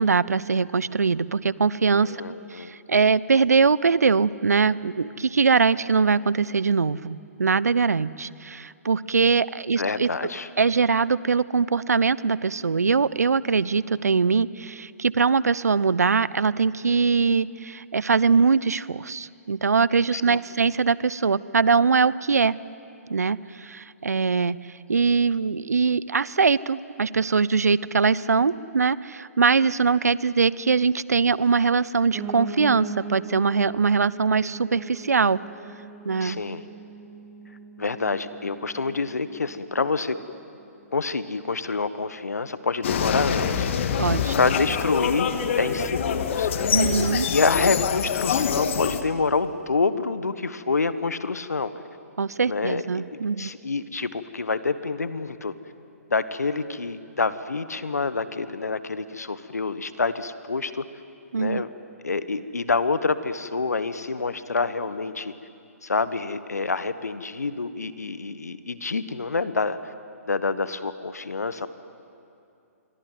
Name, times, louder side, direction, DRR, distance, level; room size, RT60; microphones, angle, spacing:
voice 1, 0.0-2.2 2.5-10.1 10.6-22.5 23.1-24.6 24.9-35.4 36.0-36.4 44.0-44.3 46.7-47.3 52.2-53.5 61.3-61.6, right 5 dB, 80° right, 20 dB, 0.7 m, -22 dB
voice 2, 2.0-2.7 9.8-10.5 20.1-20.4 36.2-36.6 37.8-40.2 40.9-43.7 44.3-45.3 45.6-46.5 47.3-51.7 52.5-52.8 53.1-55.5 56.1-60.8 61.3-61.7 62.0-65.3 65.8-69.9 70.3-71.7, left 4 dB, 80° left, 14 dB, 1.4 m, -27 dB
Piano, 32.1-41.2 41.6-42.8 43.1-43.2 43.4-43.5 43.7-43.8 44.4-44.5, right 4 dB, 20° right, 2.8 m, -40 dB
sound 1, 42.8-49.0, left 7 dB, 50° left, 1.9 m, -25 dB
27.0 x 23.0 x 9.3 m, 2.6 s
figure-of-eight pair, 130°, 8 cm